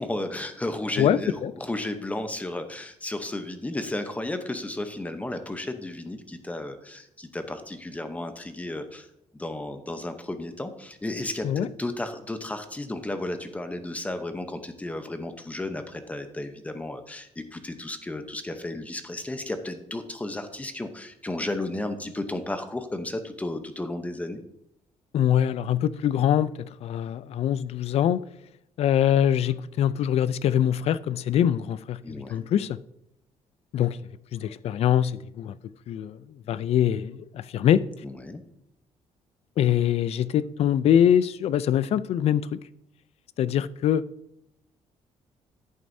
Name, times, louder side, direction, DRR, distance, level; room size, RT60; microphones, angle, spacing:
voice 1, 0.0-9.1 9.3-24.4 32.0-32.5 38.0-38.4, left 2 dB, 10° left, 0.8 m, -33 dB
voice 2, 1.0-1.5 11.4-11.7 25.1-28.2 28.8-32.8 33.7-34.0 34.3-35.6 35.9-36.2 36.5-37.8 39.6-42.6 43.4-44.0, left 10 dB, 55° left, 0.4 m, -23 dB
11.0 x 8.6 x 2.7 m
cardioid pair, 150°, 12 cm